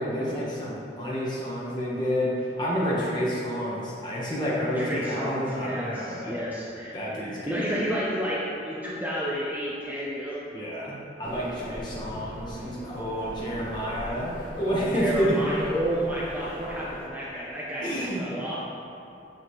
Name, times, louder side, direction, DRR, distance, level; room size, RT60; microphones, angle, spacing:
voice 1, 0.0-6.4 6.9-7.6 10.5-15.4 17.8-18.3, equal, 25° left, -7 dB, 1.3 m, -29 dB
voice 2, 4.7-10.4 14.9-18.6, equal, 10° right, -6 dB, 0.8 m, -31 dB
sound 1, 11.2-17.1, equal, 50° left, 1.1 m, -40 dB
8.9 x 6.4 x 3.2 m, 2.7 s
head